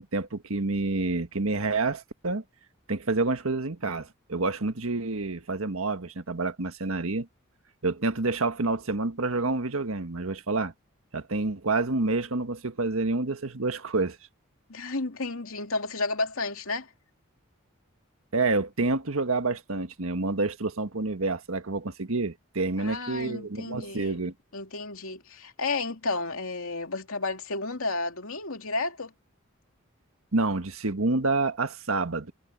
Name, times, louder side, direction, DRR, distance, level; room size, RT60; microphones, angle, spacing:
voice 1, 0.0-2.4 2.9-7.3 7.8-10.7 11.1-14.2 18.3-24.3 30.3-32.3, right 3 dB, 85° right, 1.6 m, -28 dB
voice 2, 14.7-16.9 22.8-24.2 24.5-29.1, left 3 dB, 90° left, 2.7 m, -32 dB
head